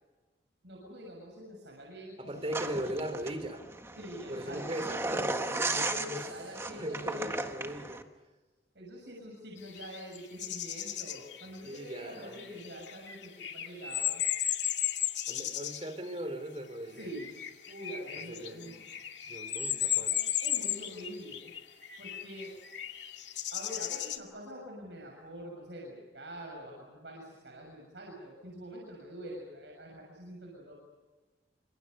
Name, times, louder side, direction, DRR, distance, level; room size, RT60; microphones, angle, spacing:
voice 1, 0.6-2.8 4.0-4.8 5.1-7.5 8.7-14.2 16.9-17.4 17.7-18.8 20.4-21.5 22.0-22.6 23.5-30.7, equal, 75° right, -1 dB, 7.0 m, -45 dB
voice 2, 2.2-3.6 4.3-5.3 5.6-5.8 6.1-6.2 6.8-8.1 11.6-12.4 15.3-17.1 18.3-18.8 19.2-20.3, right 1 dB, 35° right, 9 dB, 3.3 m, -39 dB
sound 1, 2.5-8.0, right 2 dB, 15° right, 1.5 m, -35 dB
sound 2, 9.7-15.9 17.0-24.2, left 11 dB, 85° left, 2.2 m, -35 dB
29.0 x 26.5 x 5.6 m, 1.3 s
head